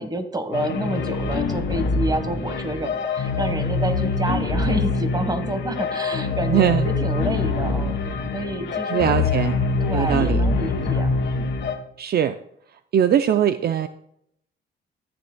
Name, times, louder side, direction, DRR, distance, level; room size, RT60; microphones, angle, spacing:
voice 1, 0.0-8.0 8.3-9.3 9.8-11.5, right 1 dB, 20° right, 8 dB, 1.4 m, -29 dB
sound 1, 0.5-11.8, left 3 dB, 65° left, 2.0 m, -24 dB
voice 2, 6.5-6.9 8.9-9.5 9.9-10.4 12.0-12.4 12.9-13.9, right 9 dB, 55° right, 10 dB, 0.5 m, -20 dB
14.0 x 8.7 x 2.3 m, 0.73 s
cardioid pair, 90°, 20 cm